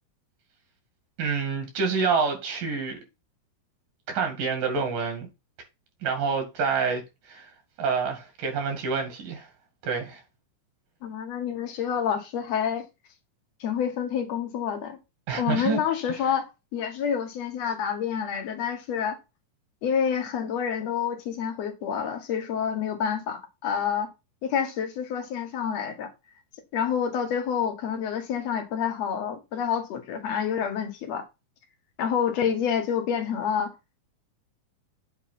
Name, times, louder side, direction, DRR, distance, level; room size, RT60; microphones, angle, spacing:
voice 1, 1.2-3.0 4.1-5.3 6.0-7.5 7.8-9.5 9.8-10.2 15.3-15.8, right 5 dB, 75° right, 3.7 m, -27 dB
voice 2, 11.0-12.9 13.6-15.0 15.4-16.5 16.7-19.2 19.8-24.1 24.4-26.1 26.7-31.2 32.0-33.7, left 7 dB, 65° left, 1.9 m, -28 dB
8.3 x 2.9 x 5.8 m
omnidirectional pair, 3.9 m